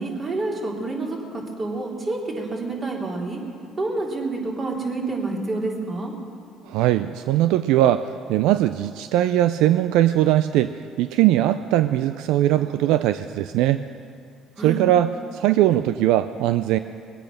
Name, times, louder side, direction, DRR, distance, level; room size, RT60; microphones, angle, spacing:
voice 1, 0.0-3.4 3.8-6.1 14.6-14.8, right 2 dB, 35° right, -2 dB, 3.5 m, -28 dB
voice 2, 6.6-13.8 14.6-16.8, right 13 dB, 80° right, 11 dB, 0.4 m, -20 dB
21.5 x 8.8 x 6.4 m, 2.3 s
supercardioid pair, 75°, 0 cm